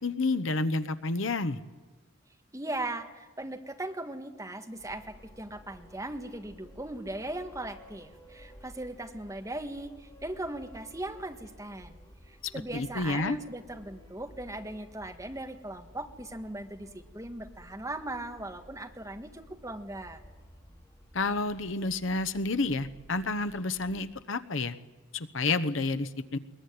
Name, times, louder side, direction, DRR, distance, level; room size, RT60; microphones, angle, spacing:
voice 1, 0.0-1.6 12.4-13.4 21.1-24.7 25.1-26.4, left 3 dB, 75° left, 11 dB, 1.0 m, -30 dB
voice 2, 2.5-12.0 12.3-20.2, right 1 dB, 15° right, 5 dB, 1.6 m, -39 dB
sound 1, 4.8-24.1, equal, 15° left, 2.7 m, -54 dB
21.5 x 21.0 x 9.6 m, 1.2 s
head